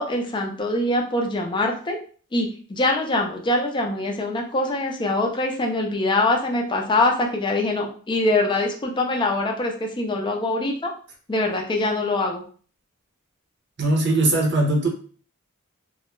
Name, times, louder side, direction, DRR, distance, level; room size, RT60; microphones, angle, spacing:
voice 1, 0.0-2.0 2.3-10.9 11.3-12.4, left 2 dB, 20° left, 2 dB, 0.4 m, -23 dB
voice 2, 13.8-14.9, right 2 dB, 55° right, 0 dB, 0.7 m, -20 dB
2.3 x 2.1 x 3.0 m, 0.42 s
head